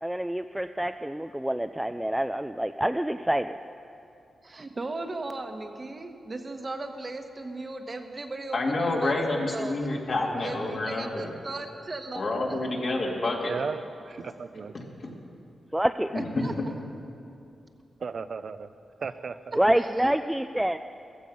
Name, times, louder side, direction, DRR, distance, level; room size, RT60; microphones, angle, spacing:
voice 1, 0.0-3.5 15.7-16.1 19.6-20.8, right 1 dB, 5° right, 8 dB, 0.3 m, -27 dB
voice 2, 4.4-9.7 10.3-12.7 16.1-16.7 19.8-20.2, right 2 dB, 35° right, 6 dB, 1.1 m, -37 dB
voice 3, 8.5-11.3 12.1-13.5 14.7-15.1 16.1-16.5, left 2 dB, 55° left, -1 dB, 2.4 m, -28 dB
voice 4, 13.5-14.7 18.0-18.7 19.0-19.6, right 5 dB, 60° right, 11 dB, 0.5 m, -35 dB
15.0 x 14.5 x 5.4 m, 2.5 s
cardioid pair, 90°, 0 cm